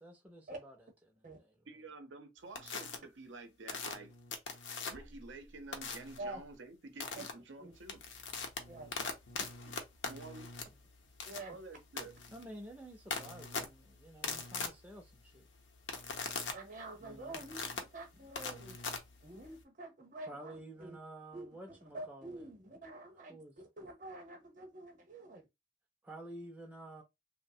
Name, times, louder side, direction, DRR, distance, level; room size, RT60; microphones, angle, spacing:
voice 1, 0.0-0.7 1.1-1.5 12.3-15.5 17.0-17.4 18.2-18.3 20.3-22.4 23.3-23.6 26.0-27.0, right 1 dB, 10° right, 0.5 m, -51 dB
voice 2, 1.7-4.1 4.9-8.0 9.4-9.7 10.0-10.5 11.5-12.1, right 3 dB, 80° right, 0.7 m, -50 dB
sound 1, 2.6-3.0 3.7-5.2 5.7-6.2 7.0-7.3 7.7-19.6, left 4 dB, 75° left, 0.6 m, -41 dB
voice 3, 11.2-11.6 16.5-18.8 19.2-21.0 21.3-25.4, right 2 dB, 45° right, 0.8 m, -47 dB
3.0 x 2.1 x 2.6 m
head